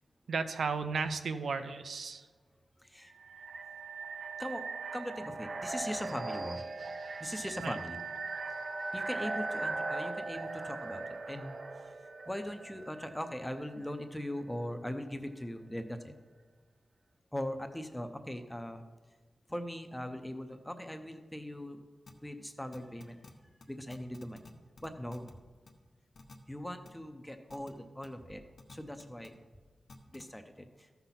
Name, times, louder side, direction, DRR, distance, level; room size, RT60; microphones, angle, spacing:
voice 1, 0.3-2.3 7.6-7.8, right 5 dB, 90° right, 9 dB, 0.6 m, -34 dB
sound 1, 3.1-13.9, right 3 dB, 35° right, 0.4 m, -39 dB
voice 2, 4.3-4.6 4.9-6.6 7.2-8.0 8.9-11.8 12.3-16.1 17.3-18.8 19.5-21.8 22.2-23.2 23.7-24.5 24.8-25.3 26.5-28.4 28.7-29.3 30.1-30.9, equal, 5° left, 7 dB, 0.6 m, -40 dB
sound 2, 22.1-22.2 22.7-23.3 23.6-23.7 23.9-24.5 24.8-25.3 25.7-25.8 26.2-26.4 26.9-27.0 27.5-27.7 28.0-28.1 28.6-29.3 29.9-30.2, left 4 dB, 55° left, 0.9 m, -51 dB
14.0 x 5.8 x 4.0 m, 1.3 s
wide cardioid pair, 160°, 0 cm